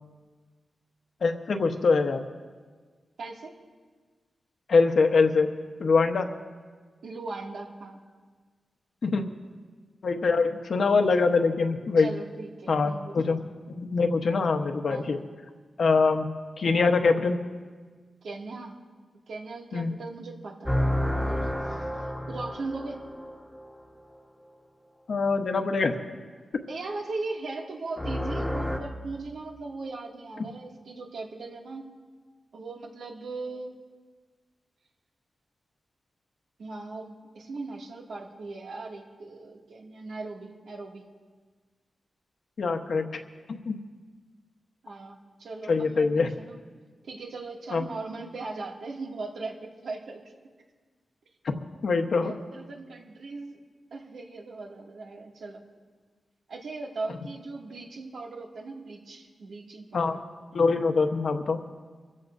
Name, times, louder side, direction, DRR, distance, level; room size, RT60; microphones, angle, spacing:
voice 1, 1.2-2.2 4.7-5.5 5.8-6.3 9.0-9.3 10.0-12.1 12.7-13.4 13.8-15.2 15.8-16.3 16.6-17.4 19.7-19.9 25.1-26.0 42.6-43.2 43.5-43.8 45.7-46.3 47.7-47.8 51.8-52.3 59.9-60.2 60.5-61.6, left 4 dB, 60° left, 5 dB, 1.1 m, -23 dB
voice 2, 3.2-3.5 7.0-8.0 12.0-13.4 14.9-15.1 18.2-18.8 19.3-23.0 26.7-31.9 32.5-33.7 36.6-41.0 44.8-46.6 47.0-50.3 52.2-53.6 53.9-55.6 56.5-60.2, right 3 dB, 80° right, -1 dB, 2.3 m, -39 dB
sound 1, 20.7-23.7 28.0-28.8, equal, ahead, 1.4 m, -29 dB
25.0 x 15.0 x 2.7 m, 1.5 s
wide cardioid pair, 165°, 0 cm